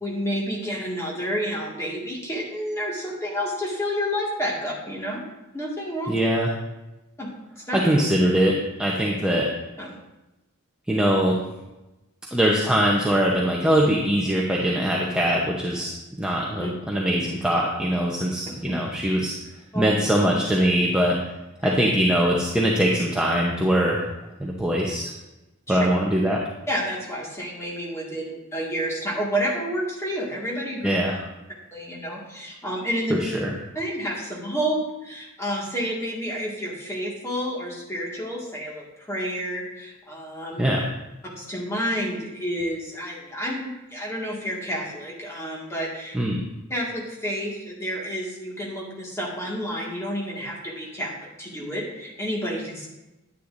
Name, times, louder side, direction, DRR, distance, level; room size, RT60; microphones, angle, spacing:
voice 1, 0.0-5.2 5.5-6.2 7.2-7.3 7.7-7.9 9.8-9.9 16.6-16.7 19.7-19.9 21.6-21.7 25.7-25.9 26.7-30.9 31.7-33.2 33.8-40.6 41.3-46.1 46.7-51.1 51.4-52.9, equal, 15° left, -4 dB, 1.9 m, -30 dB
voice 2, 6.1-6.5 7.7-9.5 10.9-11.4 12.3-19.3 19.7-21.2 21.6-24.0 24.4-25.1 25.7-26.4 30.8-31.2 33.1-33.5 40.6-40.9 46.1-46.4, equal, 5° right, -3 dB, 0.8 m, -22 dB
10.0 x 9.6 x 2.6 m, 1.0 s
head